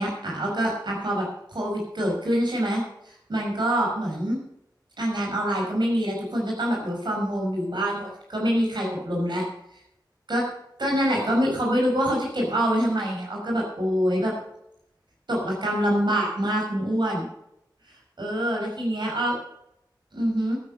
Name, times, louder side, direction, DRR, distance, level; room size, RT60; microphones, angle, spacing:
voice 1, 0.0-4.4 5.0-9.4 10.3-10.5 10.8-14.3 15.3-17.3 18.2-19.3 20.1-20.6, equal, 70° right, -2 dB, 5.5 m, -25 dB
12.0 x 9.9 x 6.5 m, 0.79 s
wide cardioid pair, 75°, 8 cm